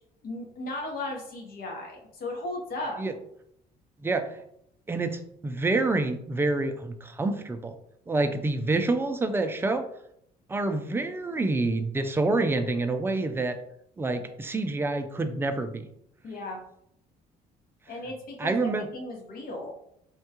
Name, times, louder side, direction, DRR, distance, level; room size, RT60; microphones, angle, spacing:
voice 1, 0.2-3.0 16.2-16.6 17.9-19.7, left 2 dB, 60° left, 0 dB, 1.0 m, -36 dB
voice 2, 4.0-4.4 4.9-7.7 8.1-9.8 10.5-13.6 14.0-15.9 18.4-18.9, right 2 dB, 15° right, 7 dB, 0.3 m, -27 dB
3.5 x 2.2 x 2.8 m, 0.73 s
cardioid pair, 110°, 17 cm